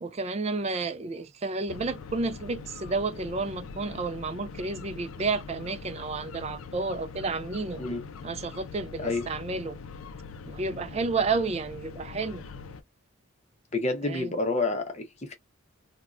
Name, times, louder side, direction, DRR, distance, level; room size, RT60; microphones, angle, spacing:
voice 1, 0.0-7.8 8.2-9.8 10.5-12.4 14.0-14.4, right 3 dB, 30° right, 0.3 m, -31 dB
sound 1, 1.7-12.8, left 5 dB, 75° left, 0.4 m, -43 dB
voice 2, 13.7-15.3, left 3 dB, 30° left, 0.6 m, -29 dB
3.4 x 2.2 x 2.4 m
head